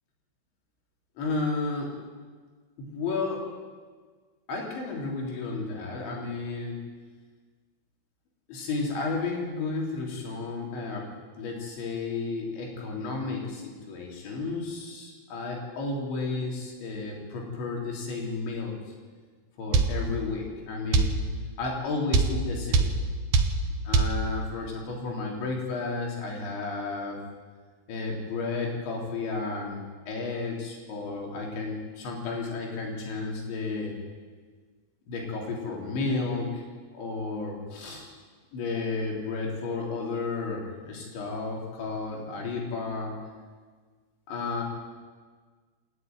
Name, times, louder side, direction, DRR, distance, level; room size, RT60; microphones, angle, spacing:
voice 1, 1.2-1.9 2.8-3.5 4.5-6.8 8.5-11.1 11.4-18.8 19.6-21.1 21.6-23.0 23.9-27.2 27.9-33.9 35.1-36.6 36.9-38.1 38.5-43.2 44.3-44.6, left 3 dB, 70° left, 0 dB, 5.8 m, -32 dB
sound 1, 19.7-19.9 20.9-21.1 22.1-22.3 22.7-22.9 23.3-23.5 23.9-24.1, right 4 dB, 75° right, 1.7 m, -20 dB
27.5 x 11.0 x 9.5 m, 1.5 s
omnidirectional pair, 5.5 m